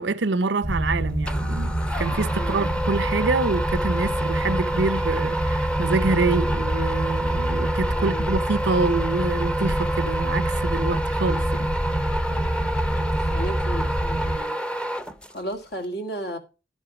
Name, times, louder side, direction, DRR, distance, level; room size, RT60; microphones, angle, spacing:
voice 1, 0.0-11.7, right 3 dB, 85° right, 0.8 m, -26 dB
sound 1, 0.6-14.4, right 1 dB, 35° left, 1.8 m, -26 dB
sound 2, 1.2-15.5, right 1 dB, 5° left, 0.8 m, -29 dB
voice 2, 2.3-2.7 7.9-8.4 12.3-14.9 15.3-16.4, right 1 dB, 65° left, 2.0 m, -35 dB
11.5 x 8.2 x 4.8 m
head